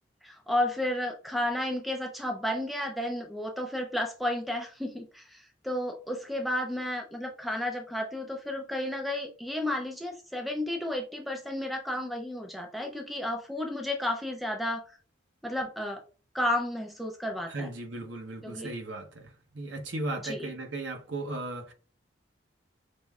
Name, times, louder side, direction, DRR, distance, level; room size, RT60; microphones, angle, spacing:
voice 1, 0.2-14.8 15.4-16.0 16.3-17.7 18.4-18.7 20.2-20.5, left 1 dB, ahead, 0.4 m, -32 dB
voice 2, 17.5-21.7, right 2 dB, 75° right, 0.9 m, -36 dB
5.2 x 3.1 x 2.3 m
head